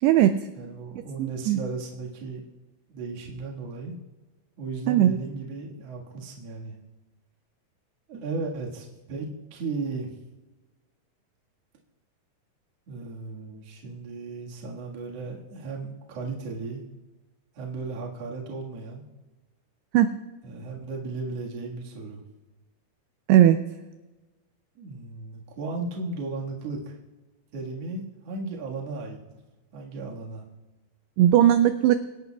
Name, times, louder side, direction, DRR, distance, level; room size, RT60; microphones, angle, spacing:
voice 1, 0.0-0.4 1.2-1.6 4.9-5.2 19.9-20.1 23.3-23.6 31.2-31.9, right 12 dB, 85° right, 9 dB, 2.4 m, -18 dB
voice 2, 0.6-2.4 2.9-4.0 4.6-6.8 8.1-10.1 12.9-16.9 17.6-19.1 20.4-22.2 24.8-26.9 27.5-29.2 29.7-30.4, right 3 dB, 55° right, -2 dB, 2.0 m, -35 dB
26.0 x 10.5 x 2.3 m, 1.2 s
omnidirectional pair, 5.1 m